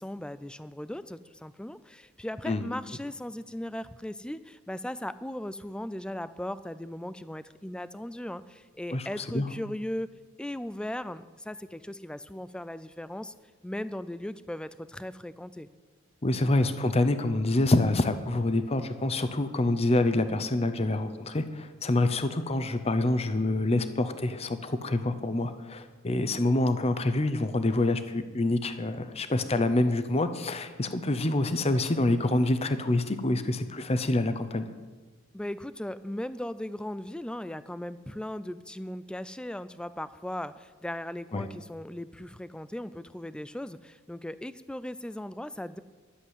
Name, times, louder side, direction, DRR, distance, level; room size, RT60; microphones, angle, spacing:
voice 1, 0.0-10.1 10.4-13.3 13.6-15.7 35.3-45.8, left 1 dB, 5° left, 15 dB, 0.3 m, -38 dB
voice 2, 8.9-9.5 16.2-34.7 41.3-41.5, left 2 dB, 30° left, 10 dB, 0.7 m, -26 dB
11.5 x 7.5 x 8.1 m, 1.3 s
head